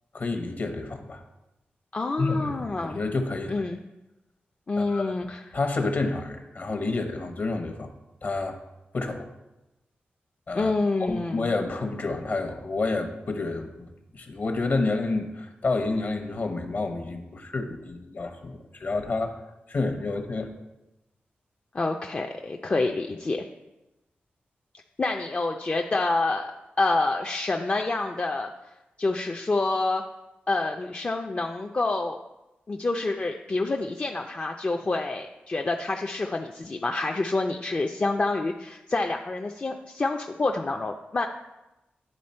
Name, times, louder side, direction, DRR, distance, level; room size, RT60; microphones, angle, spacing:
voice 1, 0.1-1.2 2.2-3.6 4.8-5.1 5.5-7.9 8.2-8.6 8.9-9.3 10.5-10.7 11.0-19.4 19.7-20.5, left 3 dB, 50° left, 6 dB, 0.9 m, -29 dB
voice 2, 1.9-3.0 3.5-3.8 4.7-5.4 10.5-11.5 21.7-23.5 25.0-26.5 26.8-28.5 29.0-30.0 30.5-32.2 32.7-41.3, left 3 dB, 35° left, 2 dB, 0.4 m, -27 dB
10.0 x 3.5 x 4.3 m, 0.98 s
wide cardioid pair, 80°, 4 cm